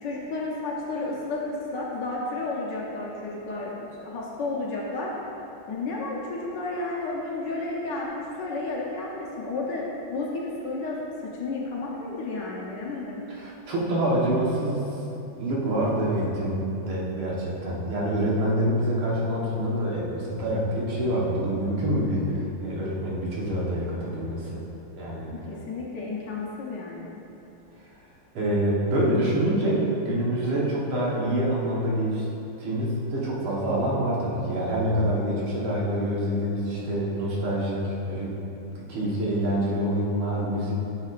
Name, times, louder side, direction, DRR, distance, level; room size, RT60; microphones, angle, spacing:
voice 1, 0.0-5.1 5.7-9.8 10.1-13.2 25.3-27.1, left 3 dB, 60° left, -4 dB, 1.4 m, -32 dB
voice 2, 13.3-14.8 15.4-24.6 25.0-25.3 28.3-32.3 32.6-38.3 38.9-40.7, right 1 dB, 75° right, -5 dB, 2.1 m, -26 dB
10.5 x 6.2 x 2.5 m, 2.9 s
omnidirectional pair, 2.3 m